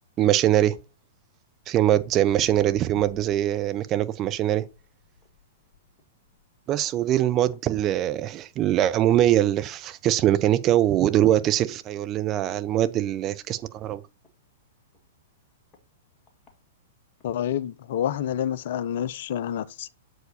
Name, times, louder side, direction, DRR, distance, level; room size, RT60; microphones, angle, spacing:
voice 1, 0.2-0.8 1.7-4.6 6.7-14.0, right 12 dB, 30° right, 0.7 m, -22 dB
Walk footsteps, 1.8-8.5 8.8-9.2 9.7-9.8 10.5-10.6 11.0-11.1 11.2-11.3 11.9-12.1 12.7-14.3 14.9-15.0 15.7-15.8 16.3-16.5 17.2-17.3, left 4 dB, 25° left, 2.0 m, -50 dB
voice 2, 17.2-19.9, left 10 dB, 55° left, 0.5 m, -28 dB
7.8 x 4.9 x 4.1 m
figure-of-eight pair, 105°, 0 cm